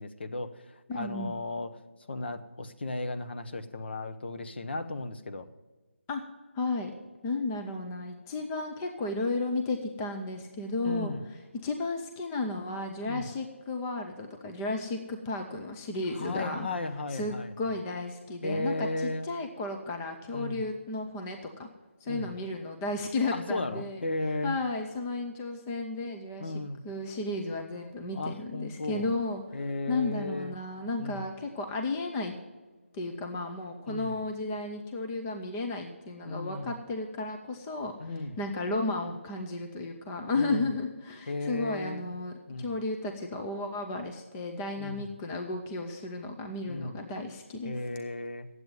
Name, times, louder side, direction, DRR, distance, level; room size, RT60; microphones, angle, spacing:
voice 1, 0.0-1.7 2.1-5.5 10.8-11.3 13.1-13.3 16.1-17.5 18.4-19.3 20.3-20.6 22.1-22.3 23.3-24.6 26.4-26.8 28.1-29.1 29.5-30.6 31.0-31.2 33.9-34.2 36.2-36.7 38.0-38.4 40.3-40.7 41.3-42.1 42.5-42.7 44.8-45.1 46.6-47.0 47.6-48.5, left 2 dB, 55° left, 8 dB, 0.9 m, -35 dB
voice 2, 0.9-1.3 6.1-6.2 6.5-6.9 7.2-11.1 11.6-16.7 17.1-21.7 22.0-24.0 24.4-26.5 26.8-29.6 29.9-32.3 32.9-47.9, left 2 dB, 10° left, 3 dB, 0.5 m, -33 dB
9.1 x 8.0 x 9.4 m, 1.3 s
figure-of-eight pair, 165°, 7 cm